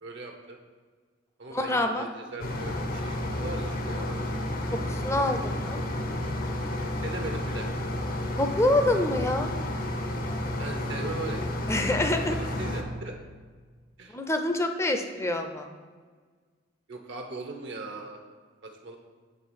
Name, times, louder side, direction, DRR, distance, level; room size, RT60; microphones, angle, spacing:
voice 1, 0.0-0.6 1.4-4.3 4.6-4.7 6.8-7.7 10.6-11.7 12.0-13.2 14.0-14.2 16.9-18.2 18.6-19.0, right 3 dB, 65° right, 3 dB, 0.8 m, -39 dB
voice 2, 1.5-2.1 4.7-5.8 8.3-9.5 11.7-12.4 14.1-15.7, left 1 dB, 15° left, 6 dB, 0.5 m, -26 dB
sound 1, 2.4-12.8, left 1 dB, 50° left, 0.7 m, -31 dB
7.6 x 3.3 x 6.2 m, 1.5 s
head